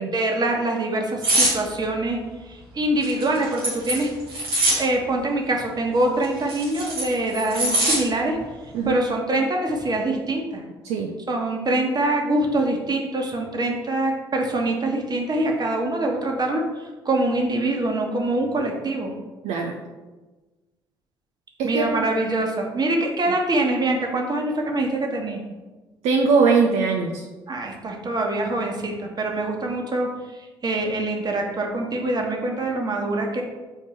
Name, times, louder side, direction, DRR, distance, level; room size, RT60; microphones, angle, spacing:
voice 1, 0.0-4.1 4.7-8.4 8.6-10.6 11.3-19.1 21.6-25.4 27.5-33.4, right 2 dB, 35° right, 1 dB, 1.4 m, -24 dB
sound 1, 1.2-1.6 3.0-4.8 6.2-8.0 8.4-8.6, right 1 dB, 85° right, 1.6 m, -22 dB
voice 2, 21.6-22.0 26.0-27.2, right 5 dB, 60° right, 1 dB, 0.6 m, -20 dB
7.7 x 4.3 x 4.4 m, 1.2 s
figure-of-eight pair, 45°, 13 cm